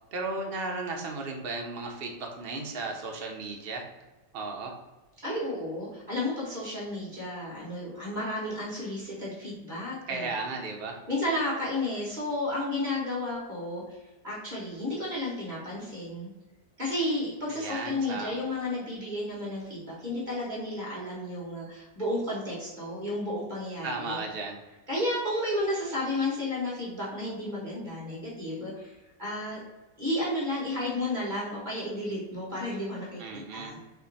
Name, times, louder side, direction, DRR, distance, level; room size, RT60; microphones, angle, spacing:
voice 1, 0.1-3.9 4.3-4.8 10.1-11.0 17.5-18.4 23.8-24.6 33.2-33.7, right 3 dB, 75° right, 1 dB, 0.5 m, -35 dB
voice 2, 5.2-10.3 11.1-14.0 14.2-16.3 16.8-24.2 24.9-29.6 30.0-33.8, left 1 dB, 30° right, -6 dB, 1.3 m, -32 dB
3.4 x 2.9 x 3.9 m, 1.1 s
omnidirectional pair, 1.9 m